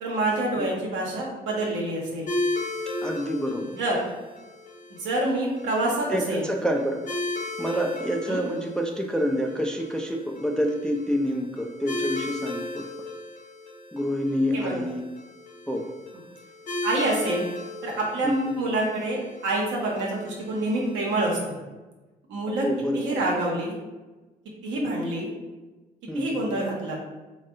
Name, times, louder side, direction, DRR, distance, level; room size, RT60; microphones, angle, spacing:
voice 1, 0.0-2.3 3.8-4.0 5.0-6.5 8.3-8.4 14.5-14.8 16.8-17.5 17.8-21.6 22.3-22.6 22.9-23.8 24.6-25.3 26.1-27.0, right 2 dB, 70° right, -2 dB, 0.8 m, -27 dB
sound 1, 2.3-21.4, left 2 dB, 40° left, 0.8 m, -36 dB
voice 2, 3.0-3.6 6.1-7.0 7.6-12.9 13.9-15.0 15.7-15.8 18.2-18.3 22.6-23.2 24.8-25.1 26.1-26.4, equal, 5° left, 2 dB, 0.3 m, -27 dB
3.4 x 2.2 x 2.4 m, 1.2 s
hypercardioid pair, 50°, 20 cm